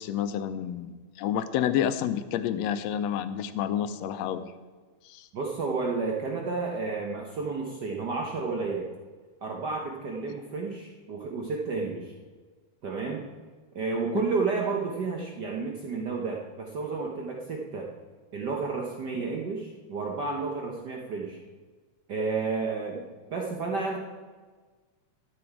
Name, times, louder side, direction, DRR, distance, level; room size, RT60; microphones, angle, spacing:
voice 1, 0.0-4.5 5.1-5.3, left 9 dB, 80° left, 12 dB, 1.7 m, -29 dB
voice 2, 5.3-8.9 9.4-12.1 12.8-13.2 13.7-17.9 18.3-21.4 22.1-23.0 23.3-24.0, right 4 dB, 80° right, 0 dB, 0.9 m, -31 dB
13.0 x 7.8 x 4.6 m, 1.4 s
omnidirectional pair, 3.3 m